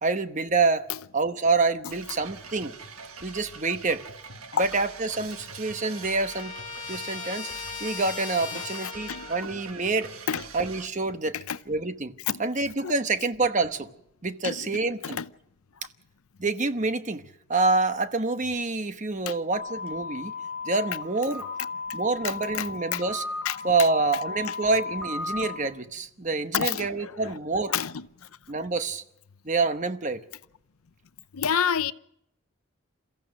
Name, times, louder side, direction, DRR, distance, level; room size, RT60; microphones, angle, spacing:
voice 1, 0.0-0.9 1.1-2.7 3.2-4.0 4.6-6.5 6.9-7.5 7.8-10.1 10.5-11.3 11.7-12.1 12.4-13.9 14.2-15.2 16.4-17.2 17.5-20.3 20.6-21.4 21.9-23.2 23.6-27.7 28.5-29.0 29.4-30.2, right 3 dB, 35° right, 1.0 m, -27 dB
sound 1, 1.9-10.9, right 5 dB, 85° right, 1.5 m, -44 dB
Trumpet, 5.1-9.5, left 5 dB, 35° left, 2.3 m, -38 dB
voice 2, 8.5-9.6 10.3-10.4 11.3-11.6 12.3-12.4 12.8-12.9 14.4-15.3 19.3-19.4 21.9-22.0 22.2-23.0 23.4-23.9 24.4-24.6 26.5-27.4 27.7-28.3 31.3-31.9, left 8 dB, 90° left, 0.7 m, -30 dB
sound 2, 19.5-25.6, left 4 dB, ahead, 4.4 m, -35 dB
28.5 x 14.5 x 6.4 m
head